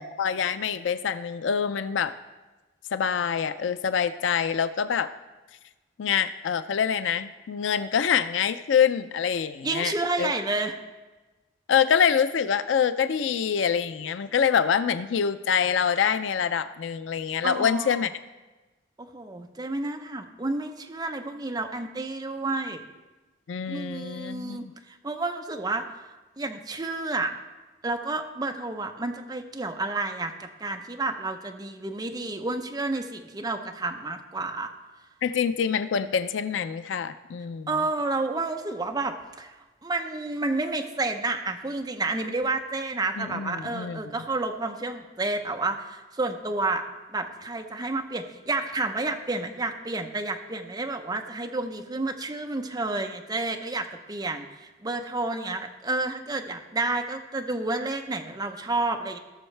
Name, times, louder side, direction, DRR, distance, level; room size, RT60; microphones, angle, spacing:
voice 1, 0.0-2.1 2.9-5.1 6.0-10.3 11.7-18.1 23.5-24.7 35.2-37.7 43.2-44.0, left 7 dB, 80° left, 12 dB, 0.4 m, -25 dB
voice 2, 9.6-10.7 17.4-18.0 19.1-22.8 23.7-25.8 26.4-27.3 27.8-34.7 37.7-39.5 39.8-46.8 47.1-59.2, right 2 dB, 20° right, 4 dB, 0.7 m, -30 dB
17.0 x 6.3 x 3.3 m, 1.2 s
head